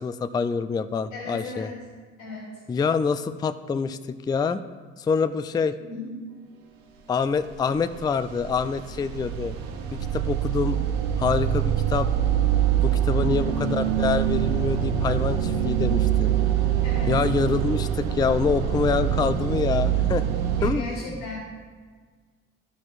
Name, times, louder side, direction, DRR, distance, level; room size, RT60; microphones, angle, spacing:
voice 1, 0.0-1.7 2.7-4.0 4.3-4.6 5.0-5.8 7.1-9.6 10.1-10.8 11.2-12.1 12.8-16.3 17.1-20.2 20.6-20.9, left 5 dB, 10° left, 11 dB, 0.3 m, -26 dB
voice 2, 1.1-1.8 2.2-2.5 5.8-6.1 13.1-13.5 16.8-17.2 20.5-21.4, left 2 dB, 90° left, -6 dB, 2.6 m, -36 dB
sound 1, 7.5-20.7, right 10 dB, 65° right, 1.0 m, -24 dB
13.0 x 6.1 x 2.5 m, 1.5 s
hypercardioid pair, 55°, 39 cm